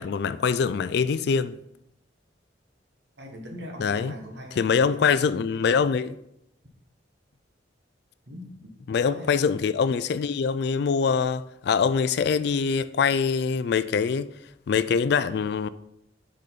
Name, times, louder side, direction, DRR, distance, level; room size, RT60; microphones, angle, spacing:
voice 1, 0.0-1.6 3.8-4.1 4.6-6.2 8.9-14.3 14.7-15.7, left 6 dB, 60° left, 0.3 m, -24 dB
voice 2, 3.2-5.1 8.3-8.5 9.0-9.4, equal, 60° right, 1.4 m, -41 dB
6.6 x 5.0 x 4.0 m
head